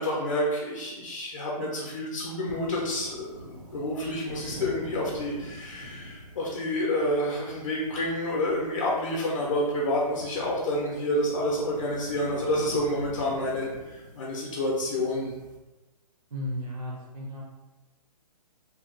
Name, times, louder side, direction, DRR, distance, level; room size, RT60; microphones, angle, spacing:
voice 1, 0.0-15.3, left 1 dB, 35° left, -3 dB, 0.5 m, -29 dB
sound 1, 2.5-15.6, equal, 30° right, 0.4 m, -45 dB
voice 2, 16.3-17.4, left 1 dB, 70° right, -3 dB, 0.6 m, -34 dB
2.7 x 2.2 x 3.7 m, 1.1 s
hypercardioid pair, 165°, 20 cm